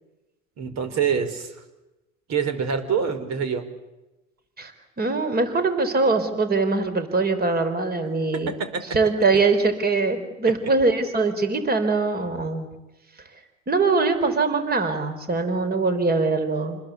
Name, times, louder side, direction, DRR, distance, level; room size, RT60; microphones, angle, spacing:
voice 1, 0.6-1.5 2.3-3.6 8.5-8.8, right 7 dB, 40° right, 10 dB, 5.1 m, -25 dB
voice 2, 5.0-8.5 8.9-12.7 13.7-16.8, right 3 dB, 25° right, 9 dB, 4.5 m, -22 dB
29.5 x 21.0 x 8.4 m, 1.0 s
hypercardioid pair, 85°, 41 cm